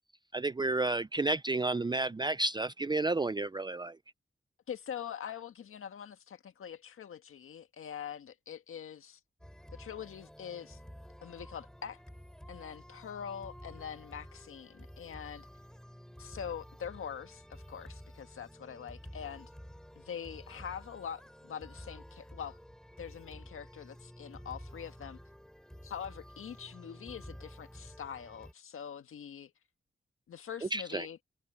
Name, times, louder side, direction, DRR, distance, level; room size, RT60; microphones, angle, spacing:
voice 1, 0.3-3.9 30.7-31.1, right 2 dB, 20° right, 0.5 m, -31 dB
voice 2, 4.7-9.2 9.7-10.8 11.2-12.0 12.5-15.5 16.2-19.5 20.0-22.6 23.0-25.2 25.8-29.5 30.3-31.2, left 8 dB, 80° left, 1.7 m, -44 dB
sound 1, 9.4-28.5, equal, 5° left, 7.7 m, -51 dB
cardioid pair, 50°, 21 cm